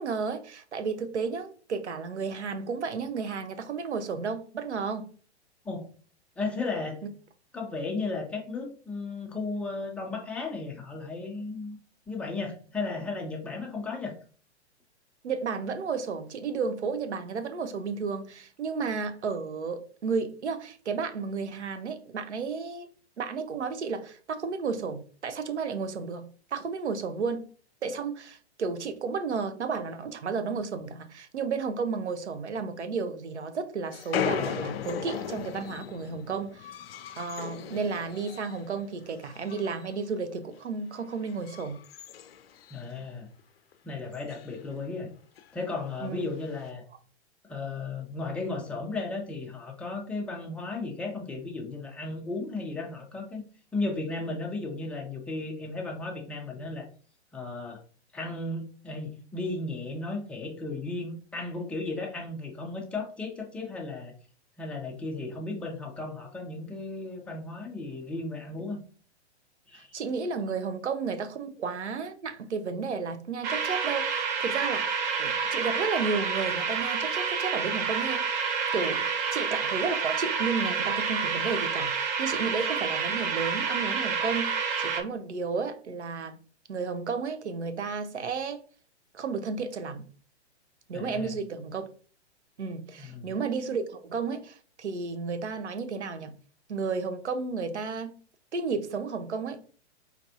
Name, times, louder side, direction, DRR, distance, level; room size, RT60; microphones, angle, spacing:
voice 1, 0.0-5.1 15.2-22.9 23.2-27.5 27.8-36.7 37.2-41.8 46.0-46.2 69.7-78.3 78.7-86.4 86.7-88.6 89.1-90.1 90.9-91.9 92.6-96.3 96.7-98.2 98.5-99.6, right 5 dB, 80° right, 0.7 m, -32 dB
voice 2, 6.4-7.0 7.5-11.8 12.1-14.2 42.7-43.3 43.8-45.1 45.5-46.8 47.4-53.4 53.7-56.9 57.3-57.8 58.1-64.1 64.6-68.8 69.7-69.9 90.9-91.3 93.0-93.3, left 3 dB, 5° left, 0.4 m, -35 dB
sound 1, 33.9-38.7 39.0-40.0 40.3-40.6 41.1-43.1 43.4-43.5 43.7-43.8 44.1-44.5 45.4-45.5 46.3-46.7, left 8 dB, 60° left, 0.5 m, -37 dB
sound 2, 73.4-85.0, right 6 dB, 40° right, 0.9 m, -29 dB
4.3 x 3.2 x 2.6 m
figure-of-eight pair, 115°, 34 cm